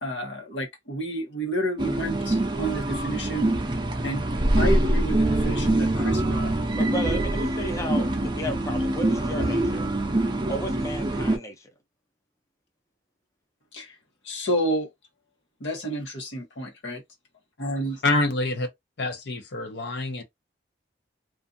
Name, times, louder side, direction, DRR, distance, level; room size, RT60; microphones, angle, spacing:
voice 1, 0.0-3.5 4.0-4.3 4.6-6.5 13.7-14.0 14.2-14.9 15.6-17.0 17.6-18.0, right 1 dB, 85° left, 1.0 m, -30 dB
sound 1, 1.8-11.4, right 1 dB, 25° right, 0.5 m, -24 dB
voice 2, 6.8-9.9 10.5-11.7, equal, 15° left, 0.6 m, -34 dB
voice 3, 18.0-18.7 19.0-20.2, left 2 dB, 65° left, 0.7 m, -26 dB
2.5 x 2.5 x 2.5 m
head